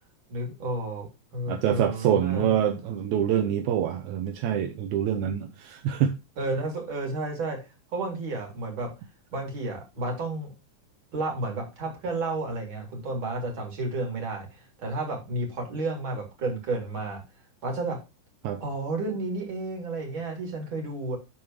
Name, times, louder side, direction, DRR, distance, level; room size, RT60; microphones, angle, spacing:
voice 1, 0.3-1.1 1.3-2.5 6.4-7.6 7.9-8.9 9.3-10.5 11.1-17.2 17.6-18.0 18.6-21.2, right 2 dB, 35° right, 3.4 m, -31 dB
voice 2, 1.5-6.2 18.4-18.6, right 10 dB, 75° right, 1.8 m, -25 dB
12.5 x 4.5 x 3.1 m
omnidirectional pair, 4.0 m